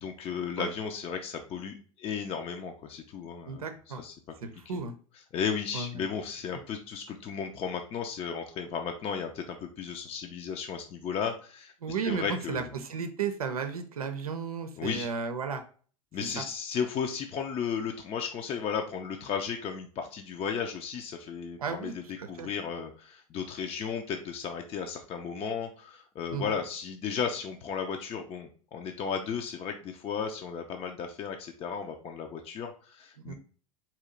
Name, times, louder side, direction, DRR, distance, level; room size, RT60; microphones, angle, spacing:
voice 1, 0.0-3.6 4.0-4.1 5.3-11.7 12.0-12.7 14.8-15.1 16.1-33.3, left 6 dB, 30° left, 4 dB, 0.6 m, -34 dB
voice 2, 3.5-4.0 4.4-5.0 5.7-6.0 11.8-15.6 16.4-16.5 21.6-21.9 22.2-22.5 26.3-26.6 33.2-33.3, right 5 dB, 80° right, 7 dB, 0.6 m, -34 dB
4.3 x 2.7 x 3.7 m, 0.42 s
hypercardioid pair, 85°, 18 cm